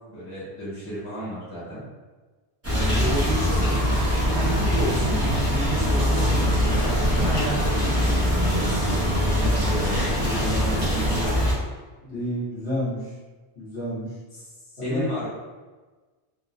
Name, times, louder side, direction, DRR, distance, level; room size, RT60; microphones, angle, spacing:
voice 1, 0.1-1.8 2.7-3.7 4.0-9.0 9.3-11.3 14.8-15.3, equal, 30° left, -10 dB, 1.0 m, -32 dB
sound 1, 2.6-11.5, equal, 15° right, 0.6 m, -22 dB
voice 2, 12.0-13.1 13.5-14.1 14.8-15.1, equal, 75° left, -9 dB, 1.2 m, -30 dB
3.0 x 2.1 x 2.6 m, 1.3 s
omnidirectional pair, 1.2 m